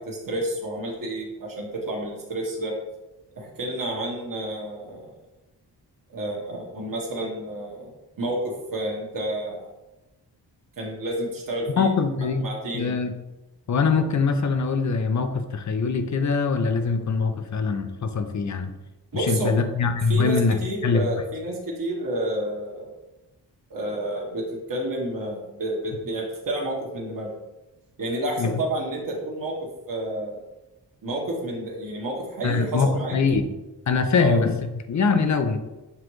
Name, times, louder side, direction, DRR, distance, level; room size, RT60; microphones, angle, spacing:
voice 1, 0.0-2.7 3.3-5.1 6.1-7.9 8.2-9.7 10.8-11.9 12.4-12.9 19.1-19.6 20.1-22.9 23.7-27.3 28.0-29.6 29.9-30.4 31.0-33.2 34.2-34.4, right 1 dB, 50° right, -2 dB, 1.1 m, -30 dB
voice 2, 11.8-12.5 12.7-13.1 13.7-18.7 19.1-21.0 28.4-28.5 32.4-33.5 33.9-35.6, left 4 dB, 45° left, 7 dB, 0.6 m, -23 dB
6.8 x 2.5 x 3.0 m, 1.0 s
cardioid pair, 60°, 42 cm